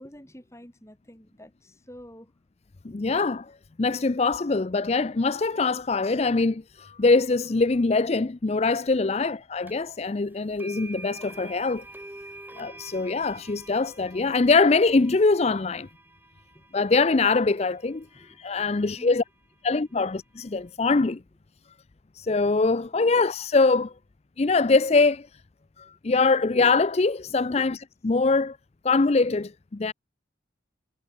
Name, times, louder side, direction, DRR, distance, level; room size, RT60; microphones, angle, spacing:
voice 1, 0.0-2.3 3.1-3.2 9.1-9.4 16.5-16.6 18.1-18.4 18.8-19.2 22.8-23.2 25.8-26.0 27.5-27.7, equal, 15° left, 3.4 m, -48 dB
voice 2, 2.8-3.5 3.8-11.8 12.6-15.9 16.7-19.2 19.6-21.2 22.1-23.9 24.4-25.3 25.8-27.8 28.0-28.6 28.8-29.9, left 3 dB, 35° left, 0.5 m, -23 dB
sound 1, 9.7-9.8 10.6-18.6, right 2 dB, 10° right, 4.1 m, -46 dB
head